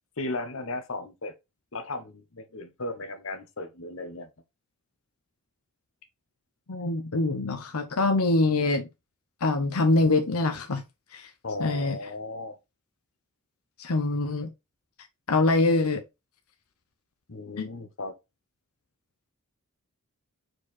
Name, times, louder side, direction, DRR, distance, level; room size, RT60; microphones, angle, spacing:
voice 1, 0.2-1.3 1.7-4.3 11.4-12.6 17.3-18.1, left 2 dB, 65° left, 1.1 m, -35 dB
voice 2, 6.7-8.9 9.4-10.8 11.1-11.3 11.6-12.0 13.8-14.5 15.3-16.0 17.6-17.7, left 2 dB, 85° left, 0.8 m, -24 dB
4.9 x 4.7 x 4.2 m
head